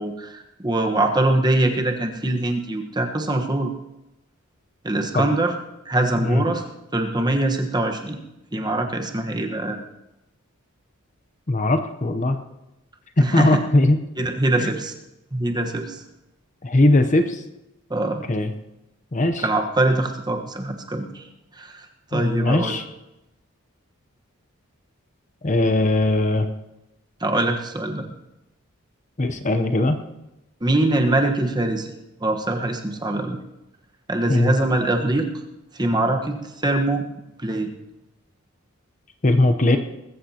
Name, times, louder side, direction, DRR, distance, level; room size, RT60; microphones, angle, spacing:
voice 1, 0.0-3.7 4.8-5.5 5.8-6.6 6.9-8.2 8.5-9.8 13.2-13.6 14.2-14.9 15.3-16.0 17.9-18.2 19.4-21.2 21.5-21.9 22.1-22.7 27.2-28.0 30.6-31.9 32.2-33.4 34.1-35.3 35.7-37.0 37.4-37.7, right 2 dB, 20° right, 3 dB, 1.2 m, -23 dB
voice 2, 11.5-12.4 13.2-14.0 16.6-17.4 18.3-18.5 19.1-19.4 22.1-22.8 25.4-26.5 29.2-30.0 34.3-34.5 39.2-39.8, left 2 dB, 35° left, 7 dB, 0.8 m, -19 dB
20.5 x 14.5 x 2.9 m, 0.92 s
head